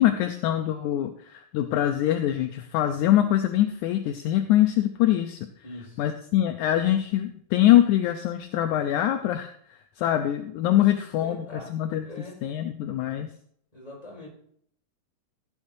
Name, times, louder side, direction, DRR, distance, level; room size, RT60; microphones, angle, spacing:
voice 1, 0.0-5.4 6.0-12.1 12.4-13.3, left 12 dB, 80° left, 7 dB, 2.0 m, -23 dB
voice 2, 5.6-6.1 10.8-11.7 12.0-12.4 13.7-14.3, left 1 dB, 10° left, -4 dB, 4.6 m, -42 dB
15.0 x 8.8 x 2.7 m, 0.65 s
omnidirectional pair, 3.7 m